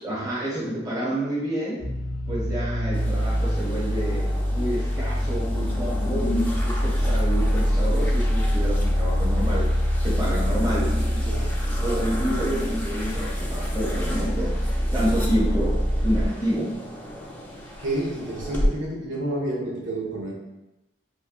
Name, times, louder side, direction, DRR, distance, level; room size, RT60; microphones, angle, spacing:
voice 1, 0.0-1.8 2.3-4.2 4.5-9.6 10.0-10.9 11.8-14.5 14.9-16.7, equal, 20° right, -7 dB, 1.0 m, -29 dB
sound 1, 1.8-16.3, equal, 55° right, 1.2 m, -24 dB
sound 2, 2.9-18.7, left 1 dB, 10° left, 0.5 m, -34 dB
voice 2, 11.2-11.7 11.9-12.1 17.8-20.3, right 1 dB, 85° right, -3 dB, 0.7 m, -30 dB
4.4 x 2.3 x 2.3 m, 0.98 s
head